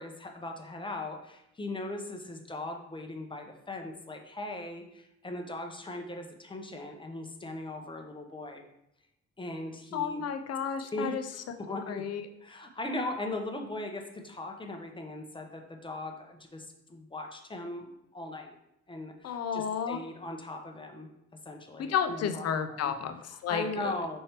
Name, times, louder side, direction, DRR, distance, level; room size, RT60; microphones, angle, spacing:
voice 1, 0.0-8.6 9.4-10.2 10.9-12.0 12.4-17.9 18.1-18.6 18.9-21.1 21.5-22.9 23.3-24.2, left 2 dB, 15° left, 3 dB, 0.7 m, -39 dB
voice 2, 9.9-11.2 11.9-12.2 19.2-20.0 21.8-23.9, left 7 dB, 55° left, 8 dB, 0.5 m, -32 dB
5.3 x 3.2 x 2.9 m, 0.82 s
cardioid pair, 90°, 30 cm